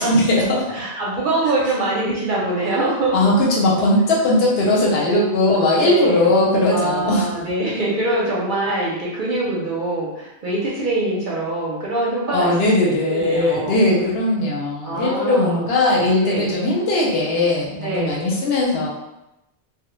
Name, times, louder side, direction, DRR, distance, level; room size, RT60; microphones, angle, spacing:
voice 1, 0.0-0.7 3.1-7.3 12.3-18.9, left 1 dB, 65° left, -4 dB, 0.8 m, -19 dB
voice 2, 0.7-3.1 5.8-6.4 6.7-13.8 14.8-15.7 16.2-16.5 17.8-18.2, right 2 dB, 55° right, -5 dB, 0.6 m, -24 dB
2.1 x 2.0 x 3.0 m, 0.92 s
omnidirectional pair, 1.2 m